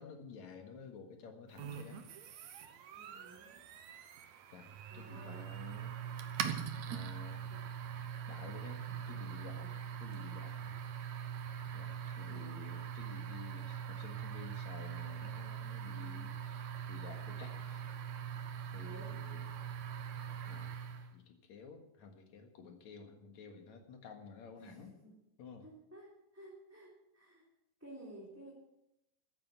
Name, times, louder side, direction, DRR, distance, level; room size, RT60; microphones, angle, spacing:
voice 1, 0.0-2.0 4.5-6.0 6.8-7.5 8.3-9.7 10.0-10.8 11.7-17.9 18.7-19.5 20.5-20.8 21.1-24.9 25.4-25.6, left 5 dB, 60° left, 4 dB, 2.9 m, -52 dB
sound 1, 1.6-21.1, right 8 dB, 65° right, 2.1 m, -42 dB
voice 2, 2.9-3.6 4.9-5.5 7.5-7.6 9.6-9.7 12.1-12.8 18.8-19.1 24.6-25.1 25.6-27.5 27.8-28.5, right 1 dB, 5° right, -6 dB, 3.2 m, -54 dB
15.0 x 9.0 x 7.1 m, 0.85 s
omnidirectional pair, 3.8 m